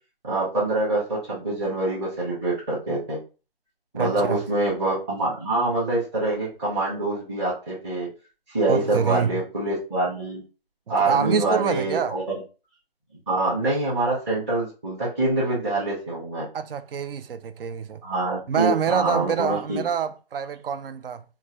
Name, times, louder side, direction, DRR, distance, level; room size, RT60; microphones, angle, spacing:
voice 1, 0.2-3.2 3.9-8.1 8.5-10.4 10.9-12.2 13.3-16.4 18.0-19.8, right 2 dB, 15° right, 0.7 m, -25 dB
voice 2, 4.0-4.4 8.7-9.4 11.0-12.2 16.5-18.0 18.5-21.2, right 7 dB, 70° right, 0.5 m, -26 dB
3.7 x 2.2 x 2.9 m
figure-of-eight pair, 155°, 30 cm